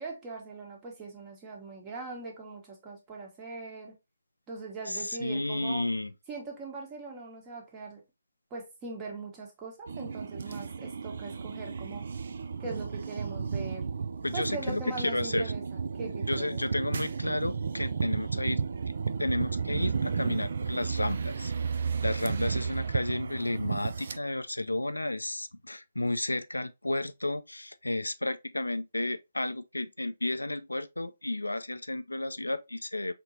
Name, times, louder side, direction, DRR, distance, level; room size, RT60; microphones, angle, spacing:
voice 1, 0.0-3.9 4.5-5.9 6.3-8.0 8.5-12.1 12.6-13.9 14.3-15.6 15.9-16.6, right 3 dB, 20° right, 1.2 m, -41 dB
voice 2, 4.9-6.1 14.2-15.4 16.3-18.6 19.2-21.5 22.0-33.1, left 2 dB, 90° left, 0.3 m, -32 dB
sound 1, 9.9-24.2, right 5 dB, 55° right, 0.4 m, -33 dB
4.4 x 2.9 x 2.7 m
figure-of-eight pair, 145°, 0 cm